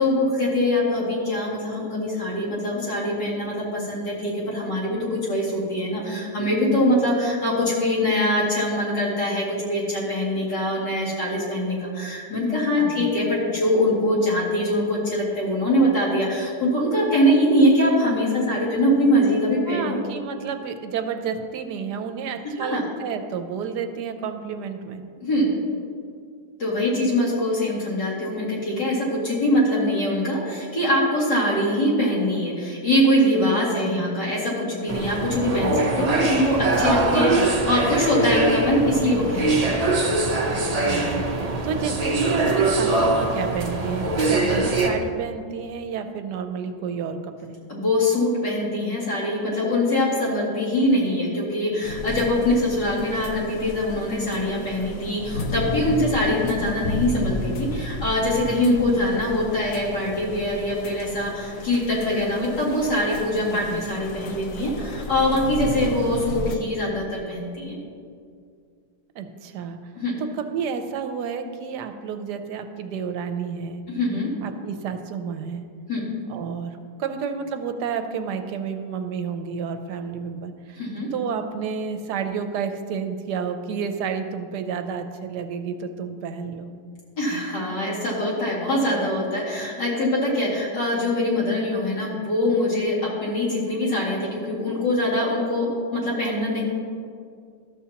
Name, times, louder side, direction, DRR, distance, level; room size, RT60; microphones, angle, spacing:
voice 1, 0.0-20.0 22.6-22.8 25.2-25.5 26.6-39.8 47.7-67.8 70.0-70.1 73.9-74.3 75.9-76.0 80.8-81.1 87.2-96.6, left 1 dB, 80° left, -6 dB, 2.9 m, -23 dB
voice 2, 12.8-13.1 19.7-25.0 33.7-34.0 40.8-47.6 63.4-63.8 69.1-69.8 70.2-73.8 74.4-75.6 76.3-80.8 81.1-86.7, right 6 dB, 80° right, 7 dB, 1.2 m, -30 dB
sound 1, 34.9-44.9, right 2 dB, 40° right, 0.5 m, -22 dB
sound 2, 51.8-66.6, left 2 dB, 65° left, 0.9 m, -33 dB
12.5 x 7.0 x 2.8 m, 2.2 s
omnidirectional pair, 1.8 m